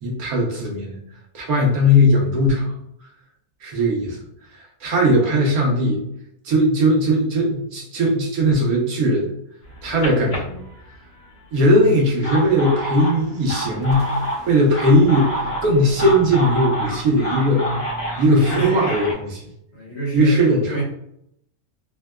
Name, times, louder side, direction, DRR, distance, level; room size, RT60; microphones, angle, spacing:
voice 1, 0.0-1.0 1.3-2.7 3.6-4.2 4.8-6.0 6.4-9.3 9.8-10.6 11.5-14.1 14.5-15.3 15.6-17.7 18.2-19.1 19.3-19.5 20.1-20.6, equal, 80° right, -1 dB, 1.3 m, -18 dB
voice 2, 5.1-5.4 18.2-19.1 19.7-20.8, right 2 dB, 50° left, -4 dB, 1.2 m, -29 dB
sound 1, 9.6-11.3 12.0-19.1, equal, 80° left, 1.5 m, -28 dB
sound 2, 12.4-13.5 13.8-18.7, right 2 dB, 50° right, 1.3 m, -38 dB
3.8 x 2.2 x 2.2 m, 0.74 s
omnidirectional pair, 1.5 m